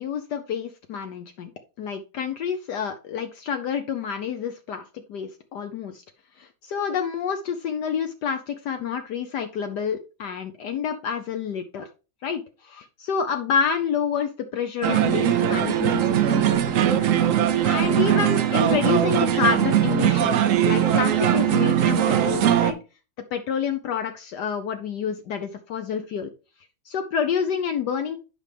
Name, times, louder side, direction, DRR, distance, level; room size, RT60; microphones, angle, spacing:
voice 1, 0.0-1.5 1.8-4.8 5.1-6.0 6.4-11.9 12.2-17.0 17.6-20.4 20.6-22.8 23.3-26.3 26.9-28.2, left 7 dB, 70° left, 7 dB, 1.2 m, -28 dB
sound 1, 14.8-22.7, right 10 dB, 65° right, 0.8 m, -20 dB
8.2 x 5.6 x 3.3 m, 0.31 s
omnidirectional pair, 2.1 m